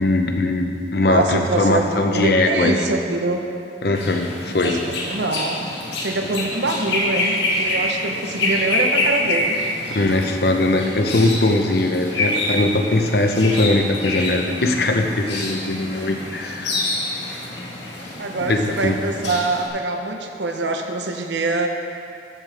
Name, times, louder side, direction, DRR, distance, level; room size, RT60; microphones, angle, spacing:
voice 1, 0.0-2.9 3.8-4.8 9.9-16.7 18.5-19.0, left 2 dB, 60° left, 4 dB, 0.8 m, -20 dB
voice 2, 1.1-3.4 4.6-9.6 18.2-21.7, right 2 dB, 90° right, 4 dB, 0.9 m, -24 dB
sound 1, 3.9-19.7, left 1 dB, 85° left, 1.7 m, -26 dB
14.0 x 7.5 x 3.4 m, 2.4 s
head